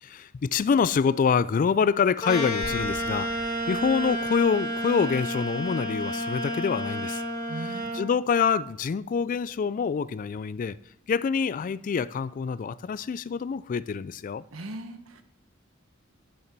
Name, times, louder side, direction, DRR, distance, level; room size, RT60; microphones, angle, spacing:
voice 1, 0.0-7.2 7.6-10.8 11.1-14.4, left 6 dB, 40° left, 0.3 m, -26 dB
sound 1, 2.2-8.0, equal, 20° left, 1.8 m, -30 dB
sound 2, 2.6-6.6, equal, ahead, 3.5 m, -46 dB
voice 2, 7.5-8.0 14.5-15.2, right 2 dB, 90° right, 1.2 m, -39 dB
10.5 x 6.8 x 5.9 m
head